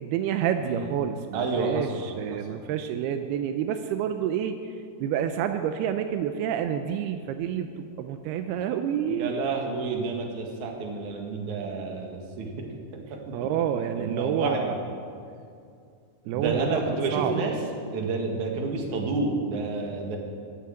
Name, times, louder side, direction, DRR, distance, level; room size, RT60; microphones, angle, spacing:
voice 1, 0.0-4.8 5.0-9.3 13.3-14.8 16.3-17.3 18.3-18.4, right 9 dB, 85° right, 7 dB, 2.7 m, -29 dB
voice 2, 0.6-0.9 1.3-2.0 2.3-2.6 9.1-12.7 12.9-13.3 13.7-14.8 16.3-17.6 17.9-20.2, right 3 dB, 55° right, 1 dB, 2.9 m, -30 dB
20.0 x 8.2 x 7.9 m, 2.4 s
omnidirectional pair, 4.5 m